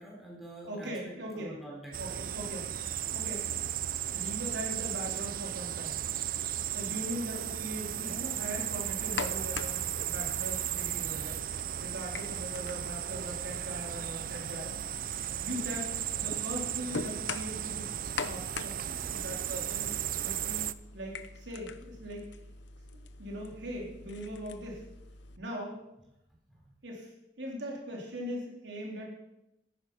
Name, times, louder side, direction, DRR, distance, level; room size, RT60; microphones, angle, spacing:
voice 1, 0.0-2.2 26.5-26.7, right 1 dB, ahead, -3 dB, 4.4 m, -47 dB
voice 2, 0.7-1.6 2.0-2.7 3.1-3.6 4.1-6.0 6.7-9.8 10.0-11.4 11.8-14.7 15.4-15.9 16.2-19.9 20.2-20.7 20.9-22.3 22.9-24.8 25.4-25.8 26.8-27.1 27.4-29.1, equal, 80° right, -1 dB, 3.8 m, -40 dB
sound 1, 1.9-20.7, right 11 dB, 50° right, 0.4 m, -35 dB
sound 2, 8.9-25.4, left 4 dB, 75° left, 0.8 m, -44 dB
14.0 x 10.5 x 5.9 m, 0.88 s
head